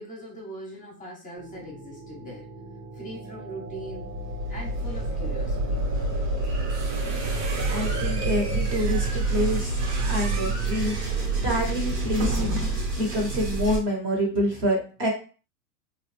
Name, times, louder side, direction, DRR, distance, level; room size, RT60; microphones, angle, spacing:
voice 1, 0.0-2.6 2.9-4.2 4.5-5.9, equal, 15° left, -1 dB, 0.9 m, -41 dB
sound 1, 1.4-13.8, right 3 dB, 90° right, 1.8 m, -28 dB
sound 2, 6.4-13.0, right 2 dB, 50° right, 0.9 m, -37 dB
voice 2, 7.7-9.7 10.1-12.6 13.0-15.1, left 1 dB, 25° right, 1 dB, 0.9 m, -27 dB
3.0 x 2.4 x 3.2 m, 0.37 s
hypercardioid pair, 125°, 47 cm